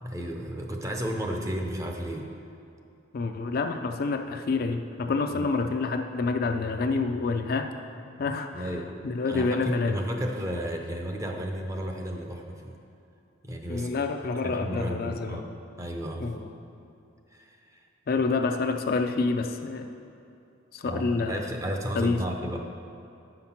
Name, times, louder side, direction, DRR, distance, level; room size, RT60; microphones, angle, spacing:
voice 1, 0.0-2.3 5.3-5.5 8.0-8.2 8.5-8.9 9.3-12.8 13.4-14.0 14.2-15.5 15.8-16.3 17.3-17.9 20.8-22.6, equal, 15° right, 2 dB, 0.6 m, -33 dB
voice 2, 3.1-7.7 8.2-8.7 9.0-10.0 13.7-15.4 16.2-16.4 18.1-19.9 20.7-21.5 22.0-22.2, left 4 dB, 45° left, 6 dB, 0.4 m, -28 dB
8.7 x 5.9 x 5.7 m, 2.6 s
head